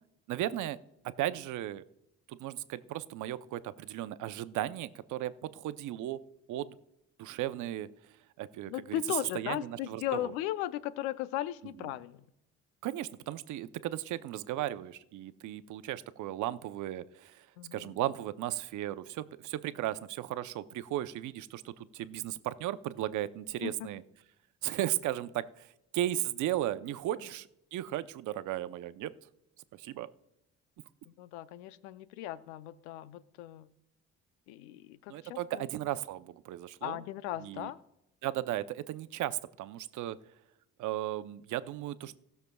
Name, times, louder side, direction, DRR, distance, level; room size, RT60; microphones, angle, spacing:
voice 1, 0.3-0.8 1.0-1.8 2.3-6.2 6.5-6.7 7.2-7.9 8.4-10.3 11.8-11.9 12.8-17.5 17.7-24.0 24.6-29.1 29.7-30.1 35.1-37.0 37.4-37.7 38.2-40.2 40.8-42.2, right 13 dB, 65° right, 13 dB, 0.7 m, -36 dB
voice 2, 8.7-12.2 17.6-18.0 23.6-23.9 31.1-33.7 34.5-35.6 36.8-37.8, left 13 dB, 90° left, 15 dB, 0.6 m, -37 dB
19.0 x 6.8 x 2.3 m, 0.84 s
supercardioid pair, 65°, 32 cm